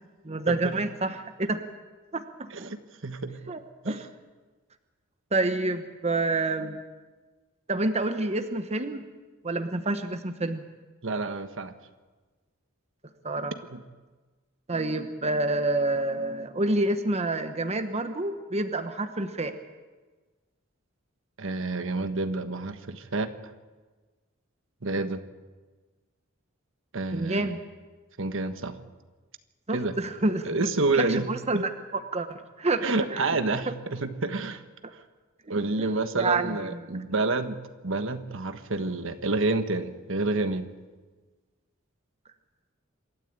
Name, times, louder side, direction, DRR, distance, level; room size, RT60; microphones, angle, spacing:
voice 1, 0.2-1.6 2.1-2.7 3.5-4.0 5.3-6.8 7.7-9.1 9.4-10.6 13.2-13.5 14.7-19.6 27.1-27.6 29.7-30.7 30.9-33.3 36.1-36.8, right 2 dB, 30° right, 8 dB, 1.2 m, -28 dB
voice 2, 3.0-3.5 3.8-4.0 11.0-11.7 13.7-13.8 21.4-23.3 24.8-25.2 26.9-27.5 28.2-28.8 29.7-29.9 30.4-31.3 31.5-31.6 32.8-34.6 35.5-37.6 37.8-40.7, right 3 dB, 70° right, 9 dB, 1.4 m, -28 dB
27.0 x 13.5 x 8.9 m, 1.3 s
head